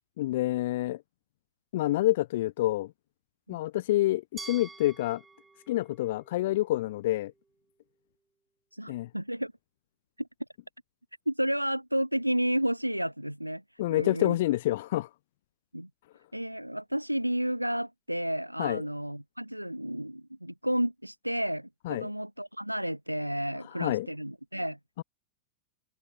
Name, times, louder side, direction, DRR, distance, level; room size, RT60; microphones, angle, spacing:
voice 1, 0.2-1.0 1.7-2.9 3.5-5.2 5.7-7.3 8.9-9.1 13.8-15.1 18.6-18.8 21.9-22.1 23.8-24.1 25.0-25.1, left 16 dB, 55° left, 0.6 m, -27 dB
Glass, 4.4-7.3, right 3 dB, 10° right, 3.0 m, -48 dB
voice 2, 8.7-9.5 10.2-10.3 11.3-13.6 13.9-14.4 15.7-15.9 16.3-24.8, equal, 90° right, 1.1 m, -31 dB
figure-of-eight pair, 90°, 0 cm